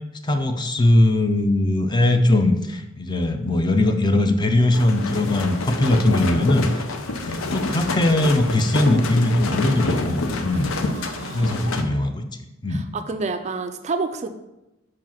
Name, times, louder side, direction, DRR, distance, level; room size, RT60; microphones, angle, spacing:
voice 1, 0.2-6.8 7.2-10.7 11.3-12.2 12.6-12.9, left 1 dB, 20° left, 7 dB, 0.5 m, -20 dB
sound 1, 4.7-11.8, left 2 dB, 85° left, 0.7 m, -27 dB
voice 2, 10.5-11.6 12.7-14.3, right 3 dB, 35° right, 8 dB, 0.4 m, -30 dB
5.0 x 4.8 x 5.7 m, 0.96 s
head